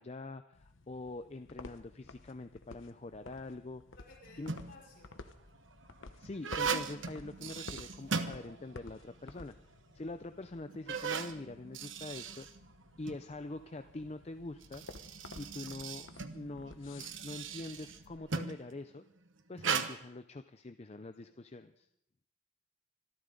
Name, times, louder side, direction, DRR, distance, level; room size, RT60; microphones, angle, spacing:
voice 1, 0.0-3.8 4.4-4.5 6.2-9.5 9.9-12.5 13.0-14.8 15.4-19.0 19.5-21.9, left 2 dB, 35° left, 8 dB, 0.5 m, -44 dB
sound 1, 0.5-18.2, left 3 dB, 85° left, 1.0 m, -54 dB
voice 2, 4.0-5.2 20.9-21.5, left 2 dB, 55° left, -1 dB, 5.9 m, -59 dB
sound 2, 4.2-4.9 5.6-9.0 9.3-9.4 10.1-10.2 10.7-13.2 14.4-18.7 19.6-19.9, right 5 dB, 80° right, 1.1 m, -38 dB
25.5 x 13.0 x 3.9 m, 0.74 s
head